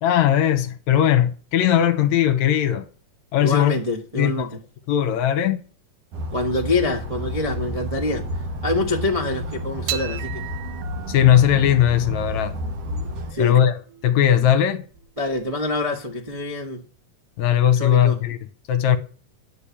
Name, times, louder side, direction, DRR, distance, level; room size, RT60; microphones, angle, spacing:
voice 1, 0.0-2.9 3.3-3.8 4.2-4.5 4.9-5.6 11.1-12.6 13.4-13.7 14.0-14.8 17.4-18.4 18.7-19.0, left 10 dB, 70° left, 2.0 m, -18 dB
voice 2, 3.4-4.6 6.3-8.3 8.6-10.5 13.3-13.6 15.2-16.8 17.8-18.2, left 2 dB, 25° right, 0.7 m, -25 dB
sound 1, 6.1-13.3, equal, 55° right, 2.6 m, -31 dB
sound 2, 9.9-16.4, right 13 dB, 80° right, 2.5 m, -38 dB
10.0 x 6.9 x 8.6 m
omnidirectional pair, 3.7 m